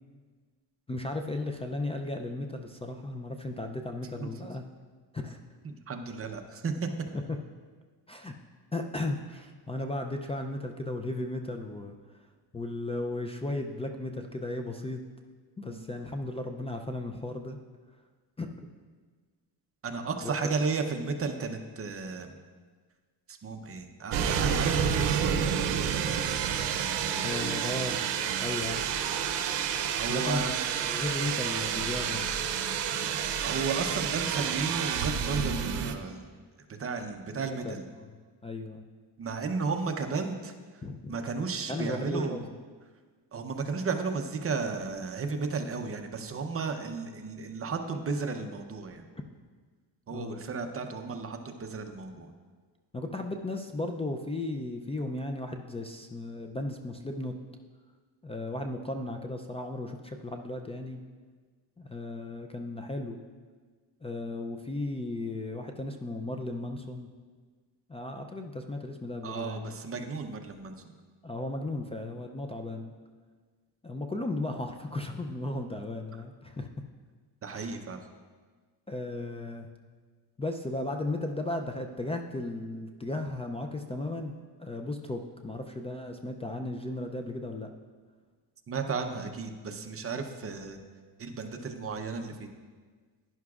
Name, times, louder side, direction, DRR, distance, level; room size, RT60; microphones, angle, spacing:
voice 1, 0.9-4.6 5.1-5.4 7.1-7.4 8.1-8.4 8.7-11.9 12.5-15.0 15.6-17.6 18.4-18.7 20.2-20.5 27.2-28.0 28.4-28.8 30.1-32.3 37.3-38.1 38.4-38.8 40.8-41.1 41.7-42.4 50.1-50.4 52.9-57.4 58.2-61.0 61.8-63.2 64.0-67.1 67.9-69.7 71.2-72.9 73.8-76.7 77.5-77.8 78.9-79.7 80.4-87.7, left 2 dB, 15° left, 4 dB, 0.4 m, -35 dB
voice 2, 5.6-6.9 15.7-15.9 19.8-22.4 23.3-25.4 29.9-30.5 33.4-36.2 36.7-37.9 39.2-40.8 41.1-42.5 43.3-49.1 50.1-52.3 69.2-70.9 77.4-78.1 88.7-90.8 91.2-92.5, right 4 dB, 35° right, 5 dB, 0.7 m, -34 dB
sound 1, 24.1-35.9, right 8 dB, 80° right, 0.8 m, -29 dB
11.0 x 10.5 x 2.4 m, 1.5 s
cardioid pair, 125°, 41 cm